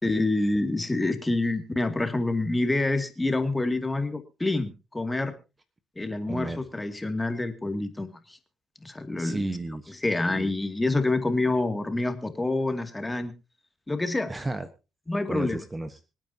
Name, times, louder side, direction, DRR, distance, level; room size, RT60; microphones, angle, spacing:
voice 1, 0.0-5.3 6.0-8.4 8.8-9.4 9.9-13.3 13.9-14.3 15.1-15.6, left 2 dB, 15° left, 7 dB, 2.4 m, -27 dB
voice 2, 6.3-6.6 9.2-9.9 10.3-10.5 14.3-14.7 15.2-15.9, right 2 dB, 20° right, 9 dB, 1.3 m, -33 dB
26.0 x 9.1 x 2.9 m, 0.29 s
cardioid pair, 90°, 0 cm